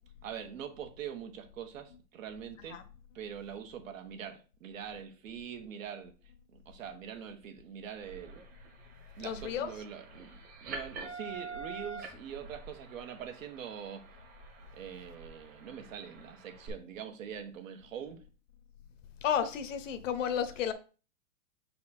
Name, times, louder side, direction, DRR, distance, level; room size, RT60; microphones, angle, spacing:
voice 1, 0.2-2.8 3.1-6.1 6.5-8.3 9.2-14.0 14.7-18.2, right 8 dB, 60° right, 1.3 m, -43 dB
sound 1, 8.0-16.7, right 4 dB, 20° right, 1.2 m, -47 dB
voice 2, 9.2-9.7 19.2-20.7, left 8 dB, 55° left, 0.9 m, -32 dB
5.9 x 4.2 x 4.2 m
supercardioid pair, 165°, 45 cm